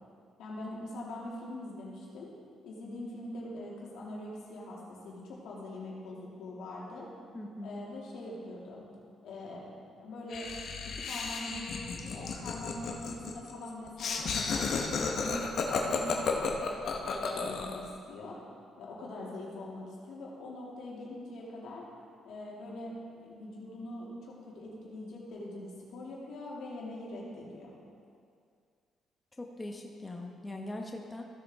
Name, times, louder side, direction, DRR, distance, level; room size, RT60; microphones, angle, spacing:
voice 1, 0.4-2.3 2.6-7.1 7.6-8.8 9.2-9.7 10.0-10.5 10.8-14.7 15.0-18.4 18.8-21.9 22.2-27.8, left 1 dB, 80° left, -4 dB, 2.4 m, -43 dB
voice 2, 7.3-7.8 29.4-31.2, left 1 dB, 20° left, 1 dB, 1.0 m, -41 dB
Laughter, 10.3-17.9, left 5 dB, 65° left, 1.1 m, -33 dB
15.0 x 6.8 x 3.6 m, 2.3 s
cardioid pair, 90°, 0 cm